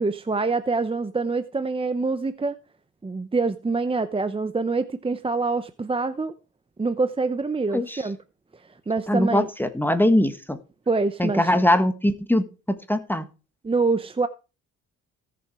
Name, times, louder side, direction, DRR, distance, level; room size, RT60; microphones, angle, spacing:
voice 1, 0.0-2.6 3.0-6.3 6.8-8.2 8.9-9.5 10.9-11.4 13.6-14.3, right 3 dB, 20° right, 0.8 m, -25 dB
voice 2, 9.1-10.6 11.2-13.2, left 1 dB, 5° left, 1.5 m, -22 dB
17.5 x 7.0 x 4.8 m
cardioid pair, 90°, 30 cm